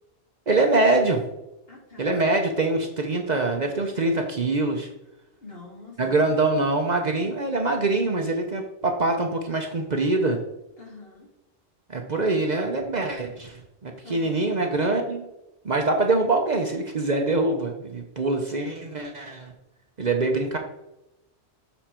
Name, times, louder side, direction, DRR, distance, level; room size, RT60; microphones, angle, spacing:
voice 1, 0.5-1.2 2.0-4.9 6.0-10.4 11.9-15.3 15.6-19.5 20.0-20.6, right 2 dB, 45° right, 3 dB, 0.8 m, -24 dB
voice 2, 1.7-2.2 5.4-6.3 10.8-11.3 14.0-14.5, left 3 dB, 60° left, -2 dB, 2.5 m, -45 dB
7.1 x 4.9 x 4.4 m, 0.92 s
omnidirectional pair, 1.1 m